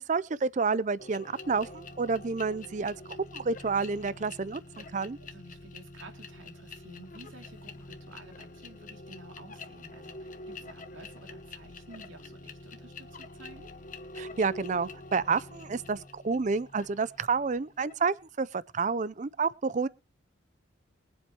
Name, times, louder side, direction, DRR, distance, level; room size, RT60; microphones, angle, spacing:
voice 1, 0.0-5.2 14.2-19.9, right 4 dB, 40° right, 0.5 m, -30 dB
sound 1, 1.0-18.2, left 2 dB, 45° left, 1.2 m, -47 dB
sound 2, 1.4-16.1, left 2 dB, 65° left, 1.0 m, -53 dB
voice 2, 5.2-13.7, right 2 dB, 80° right, 2.8 m, -52 dB
22.5 x 8.0 x 3.0 m
head